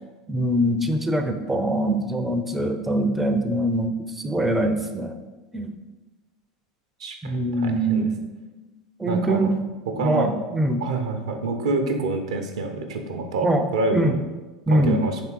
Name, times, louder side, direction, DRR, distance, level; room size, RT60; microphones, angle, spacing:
voice 1, 0.3-5.1 5.5-5.8 7.2-8.2 9.0-9.5 10.0-10.8 13.4-13.7 13.9-14.2 14.7-15.0, right 1 dB, 5° right, 5 dB, 0.4 m, -23 dB
voice 2, 7.0-8.1 9.1-9.5 9.9-10.3 10.8-14.1 14.7-15.2, right 3 dB, 70° right, 4 dB, 0.6 m, -27 dB
3.4 x 3.3 x 4.6 m, 1.2 s
figure-of-eight pair, 80°, 3 cm